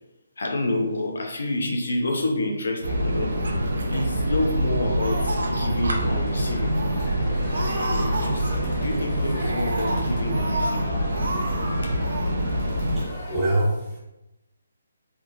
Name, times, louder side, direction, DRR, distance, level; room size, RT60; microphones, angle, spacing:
voice 1, 0.4-3.4 3.9-6.7 7.8-11.0 11.8-12.0, left 2 dB, 65° left, 2 dB, 0.7 m, -28 dB
sound 1, 2.8-13.1, equal, 90° right, 0.9 m, -26 dB
Laughter, 3.3-4.6 4.9-6.0 6.4-6.5 6.7-7.1 7.5-8.8 9.3-10.8 11.1-11.7 12.0-12.3, right 2 dB, 60° right, 0.6 m, -32 dB
Crowd, 5.9-13.5, left 1 dB, 25° left, 0.9 m, -39 dB
voice 2, 12.7-14.0, right 1 dB, ahead, -11 dB, 0.5 m, -26 dB
3.6 x 2.8 x 2.5 m, 0.96 s
hypercardioid pair, 180°, 0 cm